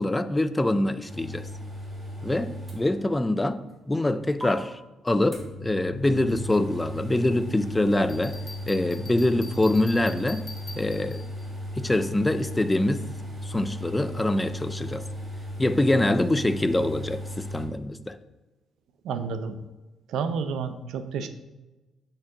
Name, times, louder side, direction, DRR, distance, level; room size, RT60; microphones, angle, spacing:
voice 1, 0.0-1.5 2.2-8.4 8.7-10.4 10.8-11.2 11.8-13.1 13.4-15.0 15.6-18.2, left 1 dB, 15° left, 12 dB, 0.3 m, -25 dB
sound 1, 1.1-3.4 3.7-3.8 4.4-4.5 5.3-17.7, left 1 dB, 20° right, 1.5 m, -36 dB
Bell, 8.1-11.4, left 3 dB, 40° left, 1.1 m, -44 dB
voice 2, 19.0-19.6 20.1-21.3, right 5 dB, 80° right, 10 dB, 0.5 m, -30 dB
5.7 x 4.5 x 3.7 m, 1.1 s
cardioid pair, 90°, 0 cm